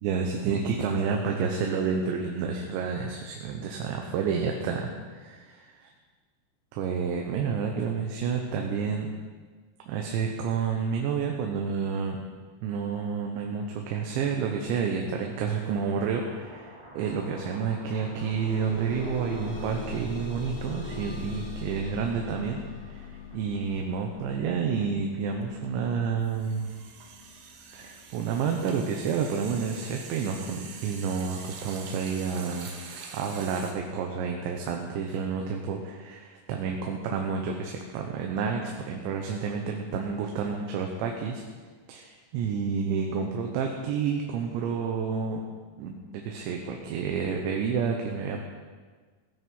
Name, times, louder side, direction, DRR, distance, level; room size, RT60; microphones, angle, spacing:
voice 1, 0.0-5.7 6.7-9.1 9.9-12.2 12.6-22.6 22.9-26.8 27.7-41.4 41.9-45.4 45.8-48.4, right 6 dB, 90° right, 2 dB, 3.3 m, -30 dB
sound 1, 15.5-23.7, right 1 dB, 10° right, 2.4 m, -49 dB
sound 2, 17.1-17.2 17.6-28.6 29.4-29.5 30.0-30.1, left 4 dB, 60° left, 4.5 m, -41 dB
sound 3, 24.9-25.1 25.4-33.7, right 5 dB, 65° right, 2.9 m, -45 dB
16.5 x 9.3 x 5.5 m, 1.5 s
omnidirectional pair, 5.1 m